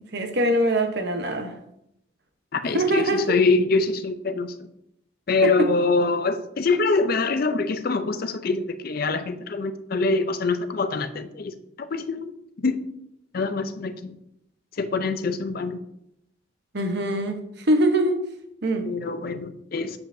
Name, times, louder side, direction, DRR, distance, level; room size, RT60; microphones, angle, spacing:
voice 1, 0.1-1.5 2.7-3.2 5.4-5.5 16.7-17.4 17.7-18.2 18.6-18.9, right 1 dB, 55° right, 5 dB, 0.9 m, -22 dB
voice 2, 2.5-4.7 5.3-12.3 12.6-12.8 13.3-14.2 14.8-15.8 18.9-20.0, left 3 dB, 45° left, 10 dB, 0.4 m, -24 dB
7.7 x 7.1 x 2.6 m, 0.78 s
head